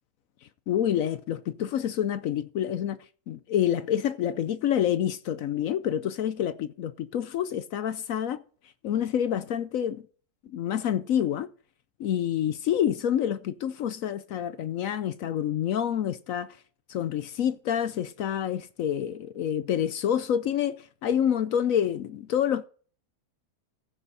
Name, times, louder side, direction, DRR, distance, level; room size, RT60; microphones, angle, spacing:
voice 1, 0.7-3.0 3.3-8.4 8.8-10.0 10.5-11.5 12.0-16.6 16.9-22.6, left 9 dB, 65° left, 1.0 m, -27 dB
15.5 x 6.0 x 4.1 m
omnidirectional pair, 1.6 m